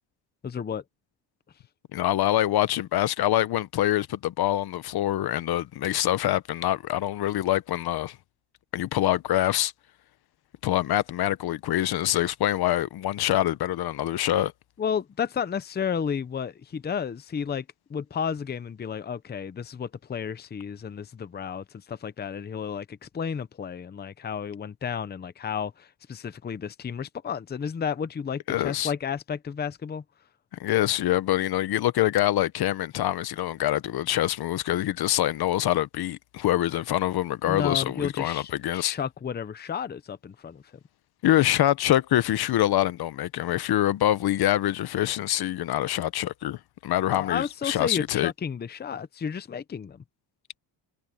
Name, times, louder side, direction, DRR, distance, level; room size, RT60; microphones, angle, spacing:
voice 1, 0.4-0.8 14.8-17.6 17.9-30.0 37.5-40.6 47.1-50.0, left 7 dB, 20° left, 0.7 m, -32 dB
voice 2, 1.9-8.2 8.7-9.7 10.6-14.5 28.5-28.9 30.6-39.0 41.2-48.3, left 13 dB, 55° left, 0.9 m, -25 dB
cardioid pair, 135°, 45 cm